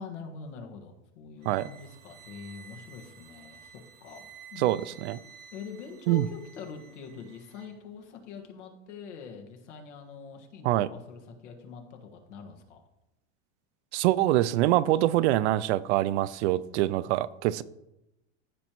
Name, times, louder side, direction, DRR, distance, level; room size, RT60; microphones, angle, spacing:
voice 1, 0.0-4.2 4.5-4.7 5.5-12.8, left 5 dB, 85° left, 1.7 m, -44 dB
sound 1, 1.4-7.7, right 7 dB, 30° right, 0.9 m, -52 dB
voice 2, 4.6-5.2 6.1-6.2 10.6-10.9 13.9-17.6, right 15 dB, 70° right, 0.5 m, -25 dB
15.0 x 5.2 x 3.0 m
supercardioid pair, 145°, 35 cm